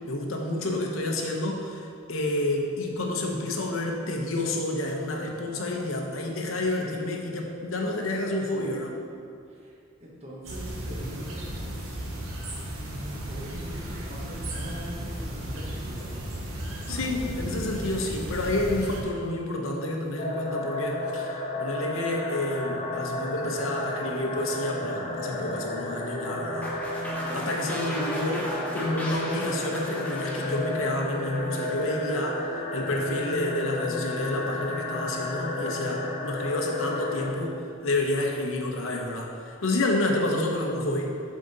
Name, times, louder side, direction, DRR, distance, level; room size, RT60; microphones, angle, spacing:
voice 1, 0.0-8.9 16.9-27.0 27.3-32.4 32.7-41.1, left 1 dB, 70° left, 0 dB, 0.8 m, -29 dB
voice 2, 9.5-12.0 13.0-16.1 27.1-27.5, equal, 30° right, -4 dB, 1.0 m, -43 dB
sound 1, 10.4-19.0, right 1 dB, 80° right, 1.0 m, -35 dB
sound 2, 20.2-37.3, left 2 dB, 40° left, 0.8 m, -32 dB
sound 3, 26.6-31.8, equal, 10° left, 0.9 m, -37 dB
7.3 x 3.8 x 4.0 m, 2.4 s
head